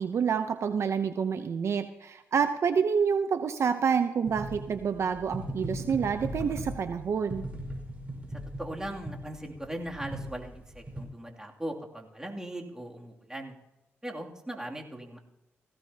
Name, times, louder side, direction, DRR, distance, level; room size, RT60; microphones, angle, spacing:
voice 1, 0.0-7.4, right 6 dB, 60° right, 9 dB, 0.8 m, -28 dB
sound 1, 4.3-11.0, equal, 25° right, 5.2 m, -39 dB
voice 2, 8.3-13.5 14.0-15.2, right 1 dB, 10° right, 0 dB, 2.7 m, -39 dB
18.5 x 15.5 x 2.9 m, 0.94 s
cardioid pair, 60°, 5 cm